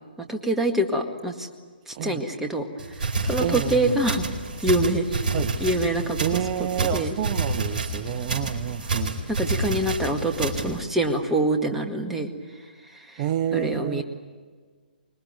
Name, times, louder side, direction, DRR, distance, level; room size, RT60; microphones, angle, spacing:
voice 1, 0.2-1.5 1.9-2.7 3.0-4.3 4.6-5.2 5.6-6.4 6.8-7.2 9.4-12.3 12.9-13.2 13.5-14.0, right 1 dB, 5° right, 4 dB, 1.9 m, -25 dB
sound 1, 2.8-10.8, right 2 dB, 50° right, 4.5 m, -29 dB
voice 2, 3.4-4.0 5.3-5.6 6.2-9.2 13.2-14.0, right 11 dB, 35° right, 8 dB, 0.8 m, -29 dB
26.0 x 21.0 x 9.5 m, 1.5 s
figure-of-eight pair, 130°, 5 cm